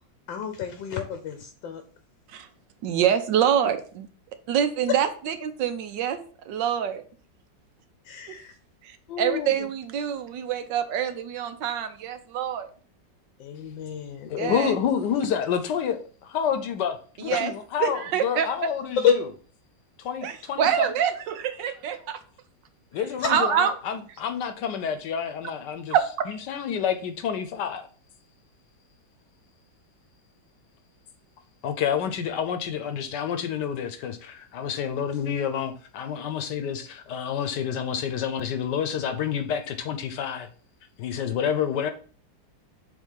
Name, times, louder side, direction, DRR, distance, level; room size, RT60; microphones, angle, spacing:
voice 1, 0.3-1.8 8.0-8.5 9.1-9.7 13.4-14.6 17.3-17.4 19.0-19.1, left 8 dB, 90° left, 1.5 m, -29 dB
voice 2, 2.8-4.1 4.5-6.2 6.5-7.0 8.3-8.4 8.8-12.7 14.4-14.8 17.2-17.5 17.8-18.5 20.2-22.2 23.3-23.7 25.9-26.3, right 9 dB, 75° right, 1.3 m, -26 dB
voice 3, 14.3-19.2 20.0-20.9 22.9-26.0 26.3-27.9 31.6-40.5 41.0-41.9, left 8 dB, 70° left, 1.3 m, -29 dB
7.3 x 3.0 x 5.5 m
omnidirectional pair, 2.0 m